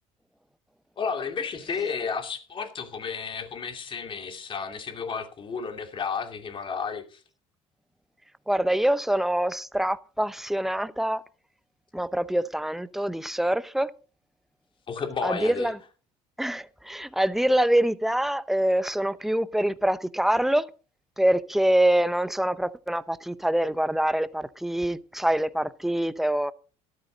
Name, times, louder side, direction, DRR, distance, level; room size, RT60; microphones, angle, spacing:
voice 1, 1.0-7.2 14.9-15.7, left 5 dB, 35° left, 2.7 m, -32 dB
voice 2, 8.5-11.2 11.9-13.9 15.2-15.8 16.4-20.7 21.2-26.5, right 1 dB, ahead, 0.8 m, -25 dB
13.5 x 12.5 x 4.0 m
supercardioid pair, 105°, 14 cm